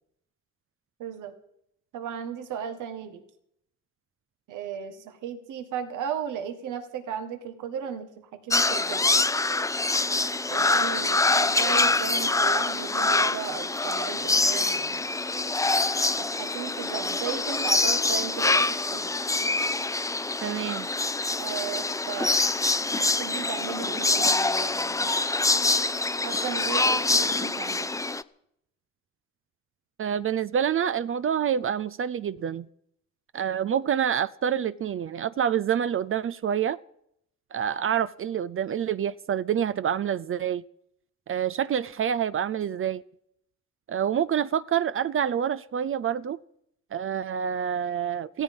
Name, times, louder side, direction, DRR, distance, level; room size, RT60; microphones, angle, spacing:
voice 1, 1.0-1.3 1.9-3.2 4.5-9.2 10.5-15.1 16.2-19.1 21.4-22.4 22.9-25.1 26.2-27.9, right 8 dB, 85° right, 1.8 m, -35 dB
sound 1, 8.5-28.2, left 3 dB, 10° left, 0.6 m, -25 dB
voice 2, 20.4-20.9 30.0-32.7 33.3-36.8 37.5-40.6 41.3-43.0 43.9-46.4 46.9-48.4, right 8 dB, 45° right, 0.5 m, -27 dB
17.5 x 15.0 x 5.4 m
cardioid pair, 90°, 30 cm